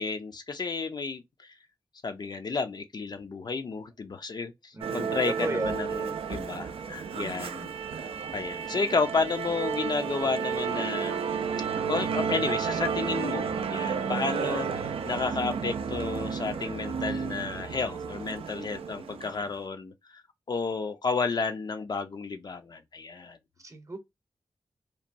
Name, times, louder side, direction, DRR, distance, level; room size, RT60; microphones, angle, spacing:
voice 1, 0.0-1.5 2.0-7.7 8.0-11.2 11.9-20.2 20.5-23.4, left 4 dB, 45° left, 0.4 m, -32 dB
voice 2, 4.7-5.9 23.6-24.0, right 2 dB, 35° right, 0.7 m, -34 dB
Musical instrument, 4.8-19.5, right 6 dB, 80° right, 0.4 m, -32 dB
2.9 x 2.1 x 2.5 m
cardioid pair, 65°, 10 cm